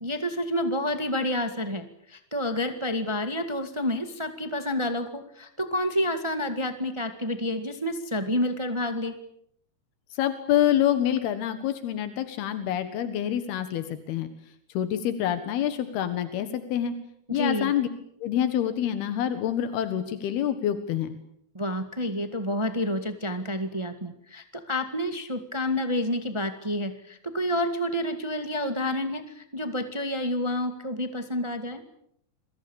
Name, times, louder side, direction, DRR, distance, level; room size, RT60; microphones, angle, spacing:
voice 1, 0.0-9.1 17.3-17.7 21.5-31.8, left 1 dB, 50° right, 8 dB, 0.3 m, -29 dB
voice 2, 10.1-14.3 14.8-17.0 17.3-17.9 18.2-21.2, left 10 dB, 85° left, 10 dB, 3.5 m, -26 dB
28.5 x 24.0 x 7.2 m, 0.72 s
omnidirectional pair, 4.4 m